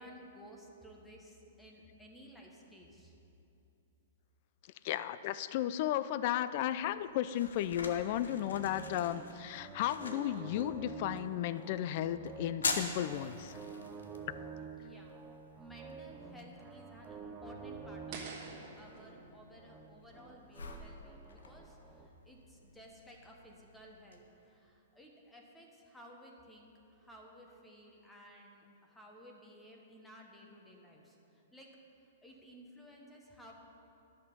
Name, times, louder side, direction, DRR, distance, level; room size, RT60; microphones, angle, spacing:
voice 1, 0.0-3.2 14.8-15.2 15.6-18.2 18.8-31.8 32.2-33.5, equal, 5° left, -1 dB, 1.2 m, -55 dB
voice 2, 4.8-13.6, left 12 dB, 50° left, 14 dB, 0.4 m, -34 dB
sound 1, 6.6-24.2, left 4 dB, 90° left, 0.9 m, -46 dB
sound 2, 8.0-22.1, right 5 dB, 15° right, 0.6 m, -49 dB
sound 3, 18.1-21.1, right 4 dB, 45° right, 1.6 m, -50 dB
11.0 x 6.5 x 5.4 m, 2.8 s
hypercardioid pair, 135°, 0 cm